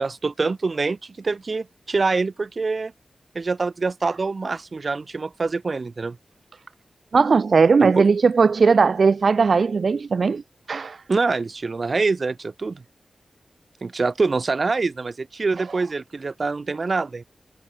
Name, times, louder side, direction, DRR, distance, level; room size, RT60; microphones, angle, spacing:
voice 1, 0.0-2.9 3.3-6.2 7.8-8.1 11.1-12.8 13.8-17.2, right 4 dB, 55° right, 0.9 m, -25 dB
voice 2, 7.1-10.4 10.7-11.0, right 5 dB, 70° right, 0.3 m, -18 dB
wide cardioid pair, 80°, 0 cm